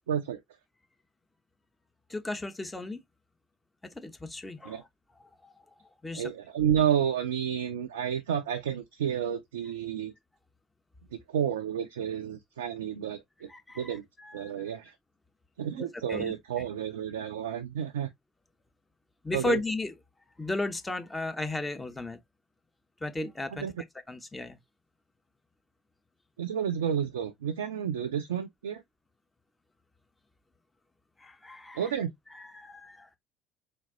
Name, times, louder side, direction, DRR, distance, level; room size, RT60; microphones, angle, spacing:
voice 1, 0.1-0.4 4.6-4.8 6.1-10.1 11.1-13.5 13.8-14.0 14.3-14.9 15.6-18.1 19.3-19.6 23.5-23.7 26.4-28.8 31.8-32.1, right 9 dB, 80° right, 0.5 m, -31 dB
voice 2, 2.1-3.0 3.8-4.9 6.0-6.2 13.5-14.5 15.8-16.7 19.2-19.9 20.4-22.2 23.0-23.7 24.1-24.6 31.2-32.0 32.3-33.1, left 2 dB, 15° left, 0.9 m, -35 dB
4.2 x 2.6 x 3.7 m
hypercardioid pair, 60°, 0 cm